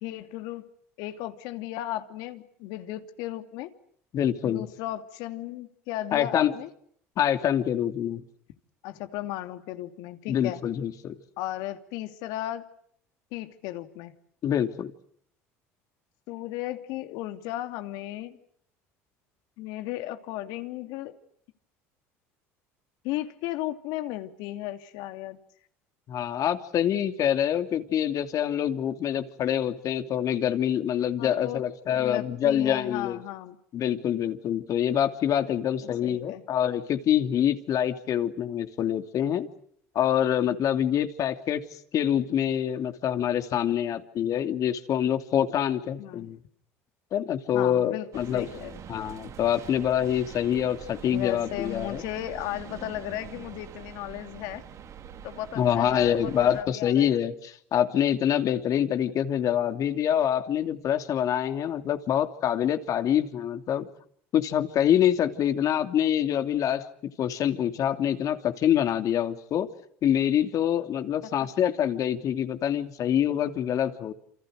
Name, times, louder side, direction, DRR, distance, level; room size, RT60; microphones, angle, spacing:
voice 1, 0.0-0.7 1.0-3.7 4.4-6.7 8.8-10.6 11.4-12.7 13.3-14.1 16.3-18.4 19.6-21.2 23.0-25.4 31.2-33.6 35.8-36.4 46.0-46.3 47.5-48.9 51.1-54.6 55.2-57.1 71.4-71.5, left 14 dB, 70° left, 8 dB, 2.9 m, -35 dB
voice 2, 4.1-4.6 6.1-6.5 7.2-8.2 10.3-11.2 14.4-14.9 26.1-33.2 33.7-39.5 39.9-41.6 41.9-46.4 47.1-48.4 48.9-52.0 55.6-63.9 64.3-66.9 67.2-69.7 70.0-74.1, left 10 dB, 50° left, 8 dB, 2.9 m, -25 dB
sound 1, 48.1-56.6, right 8 dB, 45° right, 3.5 m, -44 dB
29.0 x 28.5 x 6.6 m, 0.65 s
hypercardioid pair, 80°, 7 cm